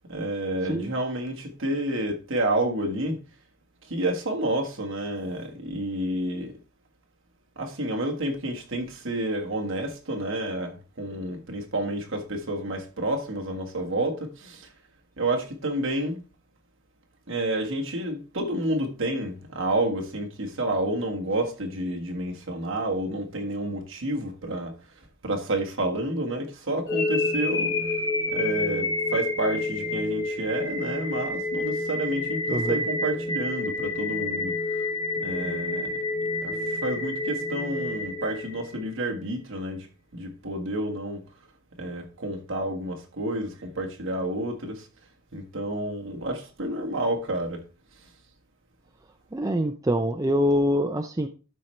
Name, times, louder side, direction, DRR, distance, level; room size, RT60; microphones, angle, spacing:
voice 1, 0.1-3.2 3.8-6.5 7.6-14.7 15.2-16.2 17.3-24.7 25.2-27.8 28.3-34.9 35.2-36.0 36.4-39.9 40.1-41.2 41.7-44.9 45.3-47.6 48.0-48.1, right 1 dB, 60° right, 1.5 m, -29 dB
sound 1, 26.9-38.9, left 2 dB, 20° left, 2.1 m, -29 dB
voice 2, 32.5-32.8 49.3-51.3, equal, 15° right, 0.4 m, -24 dB
12.0 x 4.4 x 3.2 m
head